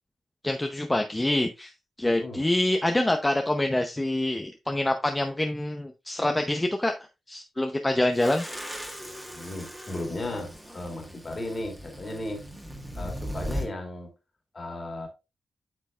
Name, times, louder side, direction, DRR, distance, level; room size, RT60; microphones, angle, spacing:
voice 1, 0.4-1.7 2.0-6.9 7.3-8.4, left 1 dB, 15° left, 0.7 m, -26 dB
voice 2, 2.0-2.5 9.3-12.5 12.9-14.1 14.5-15.1, left 1 dB, 35° left, 2.5 m, -35 dB
sound 1, 8.2-13.7, equal, 5° right, 1.7 m, -38 dB
8.5 x 6.1 x 2.4 m
cardioid pair, 100°, 0 cm